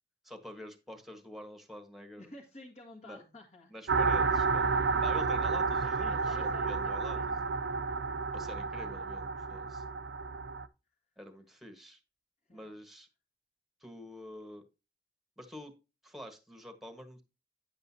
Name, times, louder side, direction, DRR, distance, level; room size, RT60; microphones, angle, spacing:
voice 1, 0.2-2.3 3.0-3.2 3.7-4.7 5.0-7.7 8.3-9.8 11.2-12.0 12.5-13.1 13.8-14.6 15.4-15.7 16.0-17.2, equal, ahead, 7 dB, 1.4 m, -47 dB
voice 2, 2.2-4.3 4.9-5.0 5.8-7.7 8.4-8.5 12.5-12.8, left 2 dB, 40° left, -1 dB, 1.7 m, -53 dB
sound 1, 3.9-10.7, right 4 dB, 70° right, 0.5 m, -31 dB
10.0 x 7.8 x 2.8 m, 0.28 s
head